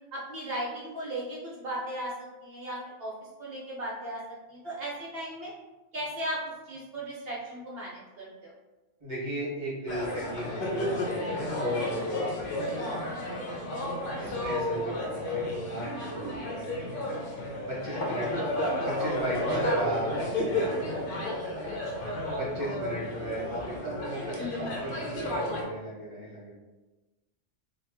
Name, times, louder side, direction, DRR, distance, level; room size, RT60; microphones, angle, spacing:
voice 1, 0.1-2.1 2.4-3.1 3.4-4.2 4.5-5.5 5.9-6.4 6.7-8.5 11.6-11.8 13.4-14.6 14.8-15.0 16.0-16.2 22.0-22.3 24.4-24.7, right 1 dB, 60° right, -5 dB, 0.8 m, -37 dB
voice 2, 9.0-12.5 14.2-16.9 17.7-18.3 18.8-20.9 22.4-26.5, right 1 dB, 40° right, -7 dB, 1.3 m, -36 dB
sound 1, 9.9-25.6, left 1 dB, 60° left, 0.7 m, -32 dB
2.8 x 2.2 x 3.4 m, 1.2 s
omnidirectional pair, 1.2 m